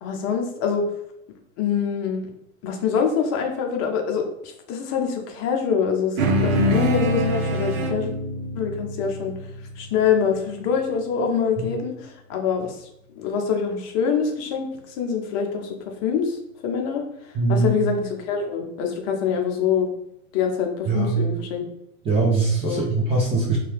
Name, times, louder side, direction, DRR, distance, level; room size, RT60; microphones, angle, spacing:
voice 1, 0.0-0.8 1.6-2.3 2.6-8.1 8.5-9.3 9.8-12.7 13.1-14.7 15.0-15.7 16.0-17.0 17.5-19.9 20.3-21.6 22.6-22.8, left 6 dB, 35° left, 3 dB, 0.6 m, -24 dB
sound 1, 6.2-10.9, right 1 dB, 80° right, 0.7 m, -25 dB
voice 2, 17.3-17.7 20.9-21.1 22.0-23.6, right 3 dB, 15° right, -3 dB, 0.5 m, -21 dB
2.7 x 2.3 x 3.3 m, 0.80 s
hypercardioid pair, 115°, 42 cm